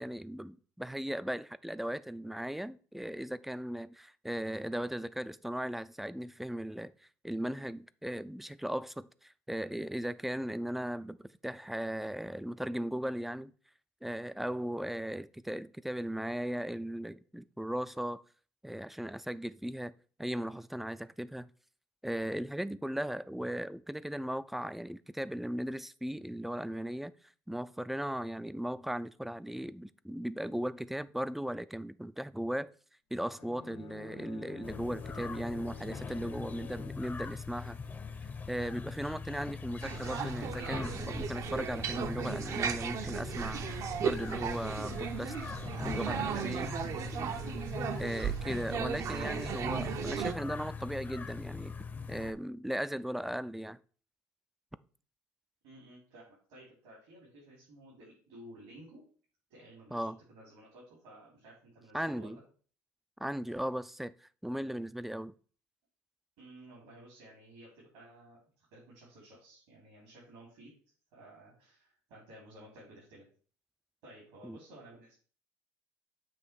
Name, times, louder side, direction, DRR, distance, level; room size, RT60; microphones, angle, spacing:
voice 1, 0.0-6.9 7.2-13.5 14.0-18.2 18.6-19.9 20.2-21.5 22.0-27.1 27.5-32.7 33.1-37.8 38.5-45.3 45.8-46.7 48.0-51.7 52.1-53.8 59.9-60.2 61.9-62.4 63.2-65.3 74.4-74.6, equal, 5° right, 0.3 m, -37 dB
Bowed string instrument, 33.3-37.2, left 5 dB, 80° left, 1.4 m, -49 dB
sound 1, 34.6-52.3, left 5 dB, 25° left, 0.7 m, -41 dB
sound 2, 39.8-50.3, right 8 dB, 50° right, 0.6 m, -36 dB
voice 2, 55.6-59.0 59.5-62.4 66.4-70.7 71.1-73.3 74.0-75.1, right 1 dB, 85° right, 3.5 m, -54 dB
7.6 x 3.0 x 6.0 m
supercardioid pair, 95°, 7 cm